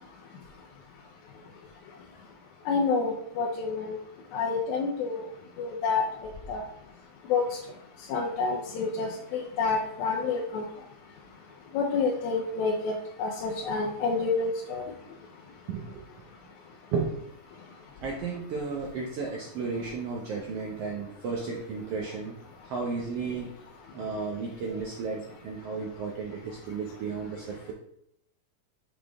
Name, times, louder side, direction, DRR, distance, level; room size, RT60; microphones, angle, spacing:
voice 1, 2.7-4.0 4.3-5.2 5.6-6.0 6.5-6.6 7.3-7.4 8.1-10.6 11.7-12.9 13.2-14.8, left 4 dB, 75° left, -2 dB, 1.8 m, -28 dB
voice 2, 18.0-22.4 22.6-23.5 23.9-27.7, right 4 dB, 85° right, -2 dB, 1.3 m, -33 dB
6.8 x 4.1 x 3.4 m, 0.76 s
omnidirectional pair, 3.8 m